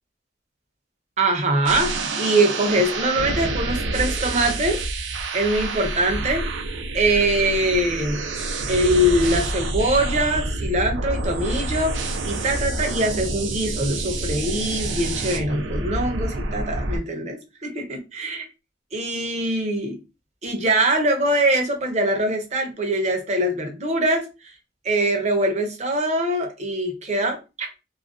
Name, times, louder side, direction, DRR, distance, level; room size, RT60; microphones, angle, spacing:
voice 1, 1.2-4.8 5.3-6.5 6.9-8.3 8.7-12.0 12.2-18.4 18.9-20.0 20.4-24.3 24.8-27.7, right 1 dB, 40° right, 0.6 m, -23 dB
sound 1, 1.6-17.0, right 2 dB, 85° right, 0.4 m, -27 dB
2.4 x 2.1 x 2.4 m
head